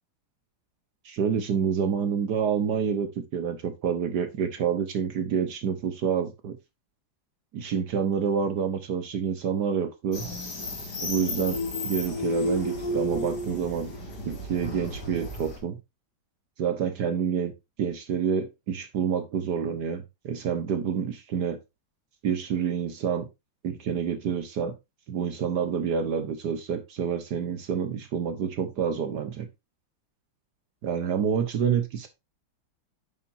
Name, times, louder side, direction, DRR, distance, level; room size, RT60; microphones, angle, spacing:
voice 1, 1.0-6.6 7.5-10.3 11.0-11.6 11.8-13.9 14.3-15.8 16.6-17.5 17.8-21.6 22.2-23.3 23.6-24.8 25.1-29.5 30.8-32.1, right 7 dB, 60° right, 1.3 m, -28 dB
sound 1, 10.1-15.6, left 1 dB, 50° left, 3.2 m, -32 dB
9.5 x 6.6 x 2.6 m
omnidirectional pair, 2.3 m